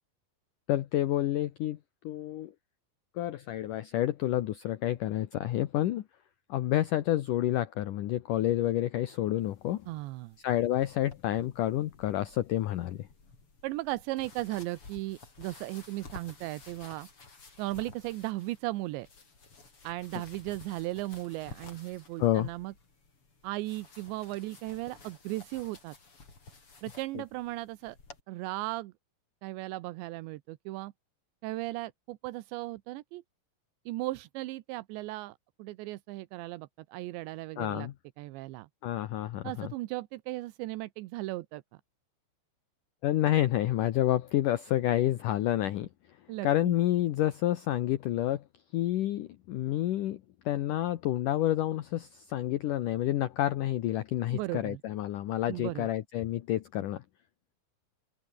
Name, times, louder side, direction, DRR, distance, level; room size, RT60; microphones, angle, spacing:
voice 1, 0.7-1.8 2.0-2.5 3.2-6.0 6.5-9.9 10.4-13.1 22.2-22.5 27.2-27.3 37.6-37.9 38.8-39.7 43.0-45.9 46.4-48.4 48.7-57.0, left 13 dB, 75° left, 1.9 m, -29 dB
sound 1, 9.4-28.2, left 4 dB, 30° left, 5.5 m, -53 dB
voice 2, 9.9-10.4 13.6-17.1 17.6-19.1 19.8-22.7 23.4-26.0 26.8-28.0 28.3-28.9 29.4-30.9 31.4-33.2 33.9-37.9 38.2-38.7 39.4-41.6 46.3-46.8 54.3-54.8 55.5-55.9, right 18 dB, 80° right, 3.1 m, -36 dB
open air
omnidirectional pair, 5.2 m